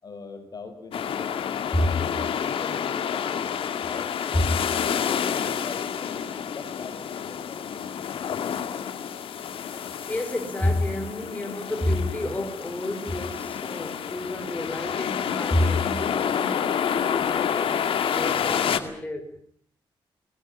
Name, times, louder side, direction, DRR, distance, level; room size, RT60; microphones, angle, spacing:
voice 1, 0.0-1.3 1.8-4.7 5.0-6.2 6.5-7.9, left 4 dB, 45° left, 7 dB, 4.9 m, -42 dB
sound 1, 0.9-18.8, left 8 dB, 80° left, 2.2 m, -29 dB
voice 2, 10.1-19.4, left 1 dB, 15° left, 5 dB, 5.5 m, -29 dB
21.5 x 20.0 x 10.0 m, 0.62 s
cardioid pair, 120°, 9 cm